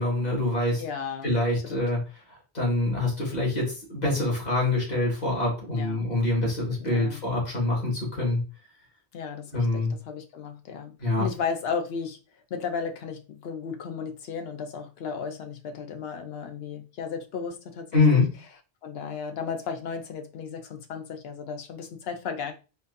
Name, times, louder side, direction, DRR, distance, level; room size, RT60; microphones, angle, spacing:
voice 1, 0.0-0.8 1.2-2.0 2.5-8.4 9.5-9.9 11.0-11.3 17.9-18.3, left 2 dB, 40° left, 1.7 m, -25 dB
voice 2, 0.8-1.8 5.7-6.1 6.8-7.2 9.1-12.2 12.5-18.2 18.8-22.5, left 6 dB, 70° left, 0.8 m, -34 dB
4.2 x 2.7 x 2.6 m
omnidirectional pair, 1.1 m